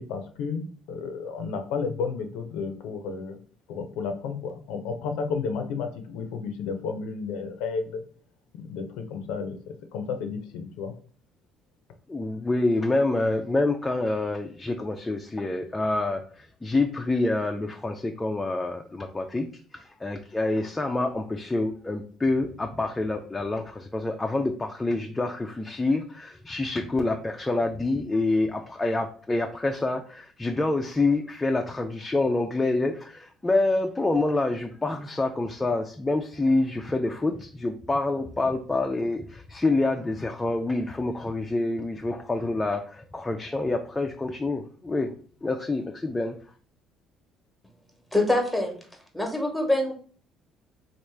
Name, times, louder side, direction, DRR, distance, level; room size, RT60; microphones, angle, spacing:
voice 1, 0.0-3.4 3.7-8.1 8.5-10.9, left 5 dB, 85° left, 6 dB, 0.5 m, -32 dB
voice 2, 12.1-19.5 19.7-45.1 45.4-46.4, left 2 dB, 15° left, 3 dB, 0.4 m, -27 dB
voice 3, 48.1-48.7 49.1-49.9, left 1 dB, ahead, 1 dB, 1.1 m, -24 dB
3.1 x 2.4 x 3.3 m, 0.44 s
supercardioid pair, 90°, 0 cm